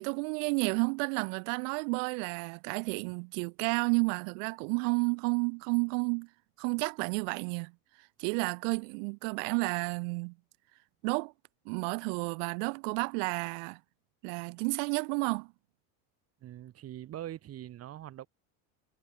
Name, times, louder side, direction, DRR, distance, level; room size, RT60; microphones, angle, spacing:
voice 1, 0.0-6.3 6.6-7.7 8.2-10.3 11.0-11.3 11.6-13.8 14.2-15.5, right 38 dB, 70° right, 1.2 m, -31 dB
voice 2, 16.4-18.3, right 12 dB, 35° right, 2.7 m, -43 dB
cardioid pair, 145°, 40 cm